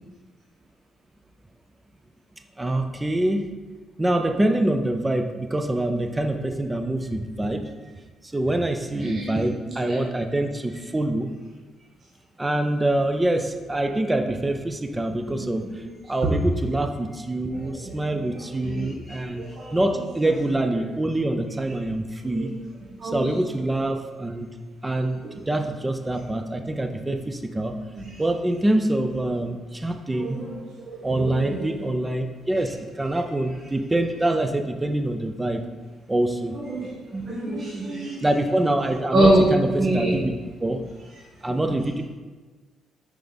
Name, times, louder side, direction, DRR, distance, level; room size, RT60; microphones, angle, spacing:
voice 1, 2.6-3.5 4.0-7.7 8.3-11.3 12.4-19.5 19.7-22.5 23.0-24.5 24.8-27.8 28.2-30.4 31.0-35.6 36.1-36.5 38.2-40.3 40.6-40.9 41.4-42.0, right 1 dB, 15° right, 7 dB, 0.5 m, -25 dB
voice 2, 9.0-9.4 9.9-10.0 15.3-15.8 16.2-16.3 17.5-17.9 18.6-18.9 19.4-19.8 21.7-21.8 22.2-22.5 23.0-23.2 30.2-30.6 30.8-31.7 36.5-38.2 39.1-39.4 39.8-40.2, right 1 dB, 50° right, -5 dB, 1.2 m, -25 dB
5.1 x 4.7 x 4.0 m, 1.3 s
cardioid pair, 90°, 0 cm